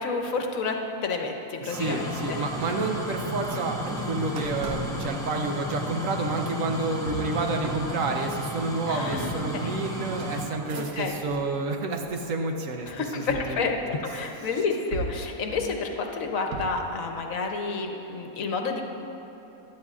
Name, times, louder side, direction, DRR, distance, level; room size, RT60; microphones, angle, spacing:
voice 1, 0.0-2.4 8.9-9.7 10.9-11.1 12.9-18.8, left 4 dB, 65° left, 3 dB, 1.2 m, -30 dB
voice 2, 1.6-12.9 13.1-13.7, right 3 dB, 65° right, 3 dB, 1.2 m, -29 dB
sound 1, 1.7-10.5, equal, 5° left, 0.7 m, -34 dB
sound 2, 2.4-11.5 11.9-12.6 13.3-14.4 14.9-17.0, right 3 dB, 85° right, 1.4 m, -40 dB
16.0 x 11.5 x 2.4 m, 3.0 s
omnidirectional pair, 1.5 m